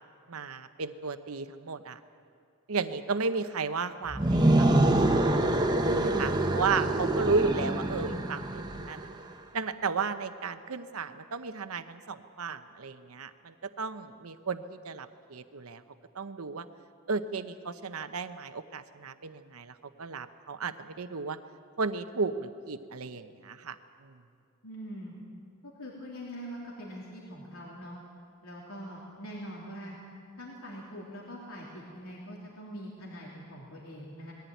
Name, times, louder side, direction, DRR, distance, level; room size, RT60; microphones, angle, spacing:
voice 1, 0.3-2.0 2.7-4.9 5.9-9.1 9.5-15.8 16.1-16.7 17.1-21.4 21.8-23.8 24.0-24.2, right 4 dB, 90° right, 10 dB, 0.8 m, -34 dB
sound 1, 4.1-9.1, right 1 dB, 20° right, 0.9 m, -25 dB
voice 2, 5.9-6.4 24.6-25.1 25.6-28.0 28.4-30.0 30.4-34.3, equal, 80° left, -4 dB, 3.4 m, -43 dB
21.0 x 15.0 x 9.3 m, 2.3 s
head